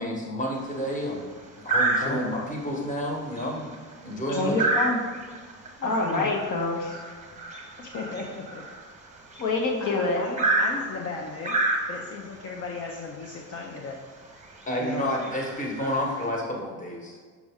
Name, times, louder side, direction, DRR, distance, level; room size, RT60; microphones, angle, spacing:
voice 1, 0.0-3.7 4.0-4.6 14.7-17.2, equal, 25° left, -1 dB, 1.3 m, -30 dB
sound 1, 0.6-0.9 1.7-2.5 2.9-3.1 3.4-9.6 10.4-12.3 13.2-13.4 13.8-13.9 14.4-14.6 15.1-16.2, right 2 dB, 20° right, 0.9 m, -29 dB
voice 2, 2.0-2.4 4.4-4.8 5.8-6.3 7.8-8.6 9.8-11.6 11.9-14.0 14.8-15.1, left 4 dB, 45° left, 0 dB, 0.7 m, -36 dB
voice 3, 4.3-5.0 5.8-7.0 9.4-10.2, left 2 dB, 65° left, 0 dB, 1.1 m, -26 dB
6.0 x 5.1 x 3.6 m, 1.5 s
cardioid pair, 120°, 33 cm